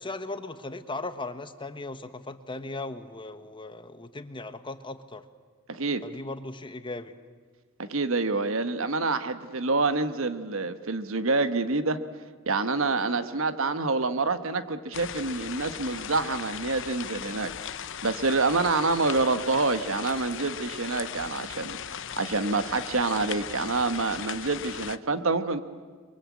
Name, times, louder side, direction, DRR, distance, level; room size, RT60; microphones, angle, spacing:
voice 1, 0.0-5.2 6.0-7.1, left 2 dB, 25° left, 10 dB, 1.2 m, -37 dB
voice 2, 5.7-6.0 7.8-12.0 12.5-25.6, right 3 dB, 70° right, 10 dB, 1.3 m, -27 dB
sound 1, 14.9-25.0, left 9 dB, 65° left, 0.9 m, -38 dB
30.0 x 23.0 x 8.5 m, 1.5 s
head